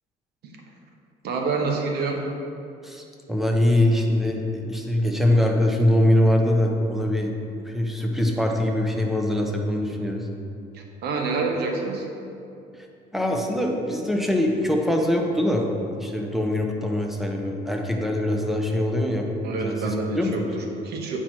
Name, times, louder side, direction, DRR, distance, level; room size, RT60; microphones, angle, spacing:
voice 1, 1.2-2.2 10.7-12.1 19.4-21.2, right 4 dB, 75° right, 2 dB, 1.1 m, -27 dB
voice 2, 3.3-7.3 7.6-10.3 12.7-12.9 13.1-15.7 16.0-20.5, left 1 dB, ahead, 1 dB, 0.9 m, -23 dB
8.8 x 4.5 x 4.5 m, 2.6 s
cardioid pair, 110°, 17 cm